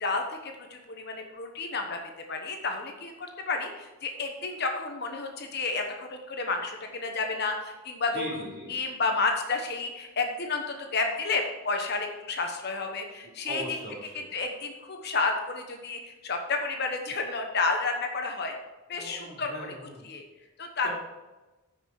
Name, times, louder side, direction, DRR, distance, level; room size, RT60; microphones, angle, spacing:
voice 1, 0.0-13.8 14.3-18.5 18.9-19.7 20.0-20.2 20.6-20.9, left 3 dB, 50° left, 3 dB, 1.1 m, -31 dB
voice 2, 8.1-8.7 13.4-14.3 18.9-20.0 20.8-20.9, right 1 dB, 45° right, -4 dB, 3.2 m, -39 dB
10.0 x 6.1 x 4.8 m, 1.1 s
head